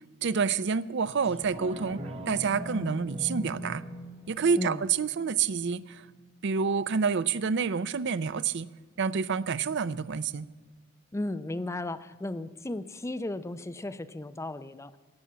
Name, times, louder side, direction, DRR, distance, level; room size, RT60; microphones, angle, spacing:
voice 1, 0.2-3.8 4.3-6.1 6.4-8.7 9.0-10.5, right 5 dB, 60° right, 17 dB, 0.5 m, -28 dB
sound 1, 1.2-6.3 6.7-6.8, equal, 30° right, 1.8 m, -41 dB
voice 2, 11.1-15.0, left 2 dB, 15° left, 12 dB, 0.4 m, -35 dB
17.5 x 7.1 x 8.6 m, 1.5 s
head